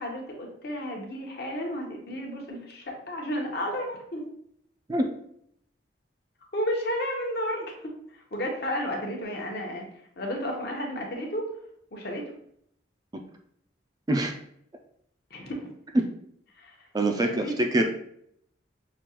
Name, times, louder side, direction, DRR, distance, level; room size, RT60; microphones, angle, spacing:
voice 1, 0.0-4.2 6.5-9.9 10.2-11.5 11.9-12.2 15.3-15.7 16.6-16.9 17.2-17.6, equal, 55° left, 0 dB, 0.9 m, -32 dB
voice 2, 16.9-17.8, right 1 dB, 20° right, 4 dB, 0.3 m, -24 dB
6.0 x 2.3 x 2.9 m, 0.71 s
head